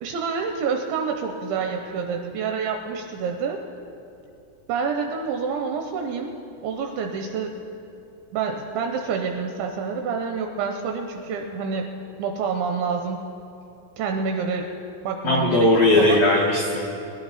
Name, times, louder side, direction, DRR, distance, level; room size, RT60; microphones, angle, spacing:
voice 1, 0.0-3.6 4.7-7.5 8.3-11.9 12.2-13.2 14.0-14.7 15.0-15.7 16.0-16.2, right 5 dB, 80° right, 3 dB, 2.7 m, -27 dB
voice 2, 15.2-16.8, left 2 dB, 80° left, -2 dB, 2.0 m, -18 dB
24.5 x 11.0 x 4.1 m, 2.7 s
omnidirectional pair, 6.0 m